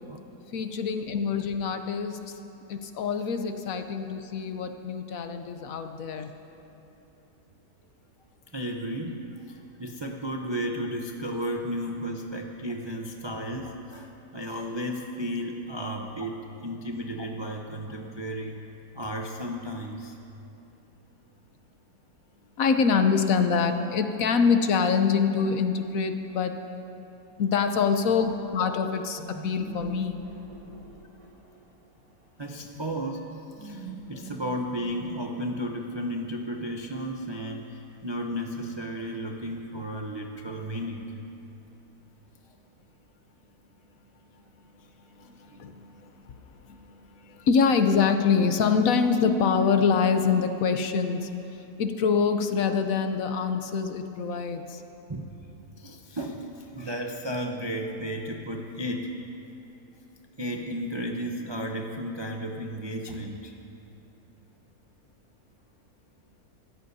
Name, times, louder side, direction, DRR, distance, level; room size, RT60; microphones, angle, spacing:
voice 1, 0.5-2.2 2.7-6.3 22.6-26.5 27.4-30.2 45.6-45.7 47.5-51.3 51.8-54.8, left 5 dB, 65° left, 7 dB, 1.0 m, -25 dB
voice 2, 8.5-18.6 18.9-20.2 32.4-33.3 33.6-41.2 45.5-45.7 55.1-55.2 55.8-59.2 60.4-63.5, equal, 40° right, 1 dB, 0.4 m, -34 dB
sound 1, 29.2-31.7 33.1-35.6, right 3 dB, 85° right, 2.6 m, -43 dB
25.0 x 14.0 x 2.7 m, 2.9 s
omnidirectional pair, 1.8 m